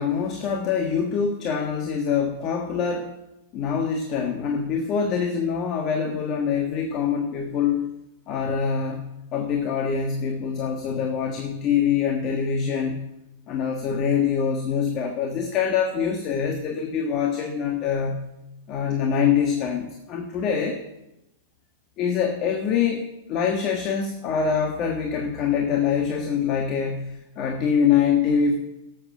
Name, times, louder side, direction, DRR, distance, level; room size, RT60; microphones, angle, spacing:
voice 1, 0.0-3.1 3.5-7.9 8.3-13.0 13.5-18.3 18.7-20.8 22.0-23.0 23.3-28.5, left 7 dB, 40° left, 3 dB, 1.3 m, -24 dB
12.5 x 7.5 x 6.4 m, 0.96 s
hypercardioid pair, 120°, 0 cm